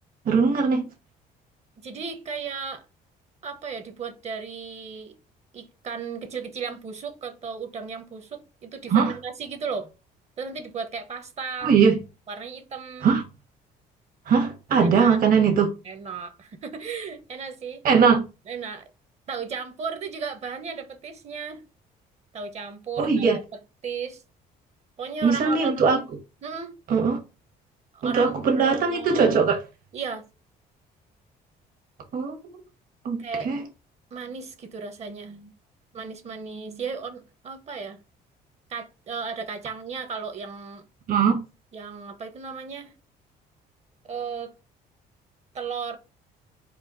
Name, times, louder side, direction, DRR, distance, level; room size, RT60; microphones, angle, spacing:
voice 1, 0.2-0.8 8.9-9.1 11.6-12.0 13.0-13.2 14.3-15.7 17.8-18.2 23.0-23.4 25.2-26.0 26.9-27.2 28.0-29.6 32.1-32.4 33.0-33.2 33.4-33.7 41.1-41.4, right 5 dB, 60° right, 1.3 m, -20 dB
voice 2, 1.8-2.8 3.4-5.1 5.5-9.9 10.4-11.7 12.3-13.1 14.8-15.2 15.8-17.8 18.5-18.9 19.3-21.6 22.3-23.4 23.8-24.2 25.0-26.0 26.4-26.7 27.9-29.4 29.9-30.2 33.2-33.5 34.1-35.5 35.9-38.0 38.7-40.8 41.7-42.9 44.0-44.5 45.5-46.0, right 5 dB, 40° right, 0.8 m, -35 dB
4.1 x 2.4 x 3.8 m
cardioid pair, 110°, 17 cm